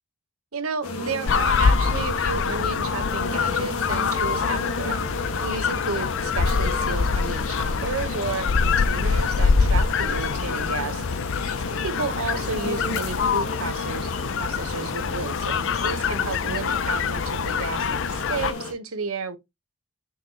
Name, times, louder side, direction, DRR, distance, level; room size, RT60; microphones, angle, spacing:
voice 1, 0.5-5.0 5.4-11.1 11.7-14.1 14.4-19.4, right 4 dB, 80° right, 1.0 m, -32 dB
sound 1, 0.8-18.7, left 2 dB, 85° left, 1.6 m, -33 dB
sound 2, 1.3-18.5, left 5 dB, 60° left, 0.5 m, -25 dB
6.5 x 5.2 x 2.8 m
head